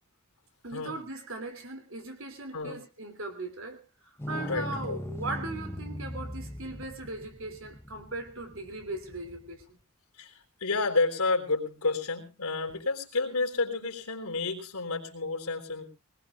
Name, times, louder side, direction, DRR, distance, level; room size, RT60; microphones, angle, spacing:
voice 1, 0.6-9.8, right 2 dB, 65° right, 7 dB, 2.9 m, -39 dB
sound 1, 4.2-9.6 12.7-12.8, left 1 dB, 10° left, 0.7 m, -40 dB
voice 2, 4.4-5.0 10.2-15.9, left 3 dB, 90° left, 3 dB, 3.7 m, -30 dB
21.5 x 20.0 x 2.5 m, 0.30 s
head